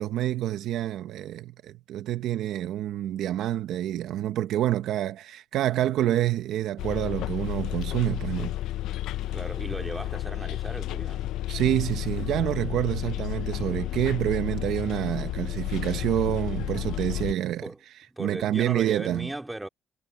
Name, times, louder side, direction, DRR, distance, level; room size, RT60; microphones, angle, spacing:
voice 1, 0.0-8.5 11.5-17.6 18.2-19.3, right 12 dB, 70° right, 0.8 m, -27 dB
Bus, 6.8-17.3, left 14 dB, 90° left, 0.4 m, -32 dB
voice 2, 9.3-11.4 17.6-17.8 18.1-19.7, right 1 dB, 5° right, 2.4 m, -37 dB
cardioid pair, 175°, 0 cm